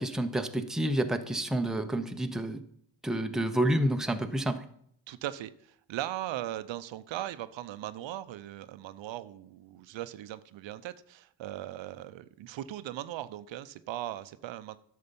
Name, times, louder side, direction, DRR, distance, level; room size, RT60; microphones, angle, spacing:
voice 1, 0.0-2.6 3.0-4.6, right 1 dB, ahead, 6 dB, 0.7 m, -29 dB
voice 2, 5.1-14.8, right 13 dB, 70° right, 14 dB, 0.7 m, -39 dB
11.0 x 6.7 x 5.3 m, 0.68 s
cardioid pair, 105°, 46 cm